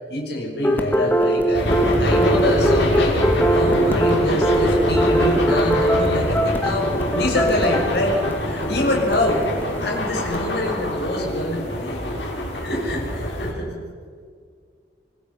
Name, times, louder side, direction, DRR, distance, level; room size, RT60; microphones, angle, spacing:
voice 1, 0.1-8.2 8.4-9.4 9.8-12.2 12.5-13.7, left 1 dB, 65° left, 0 dB, 6.6 m, -26 dB
sound 1, 0.6-10.4, right 1 dB, 10° left, 1.7 m, -22 dB
sound 2, 1.5-13.5, equal, 90° left, 6.4 m, -24 dB
25.0 x 20.5 x 5.8 m, 2.1 s
head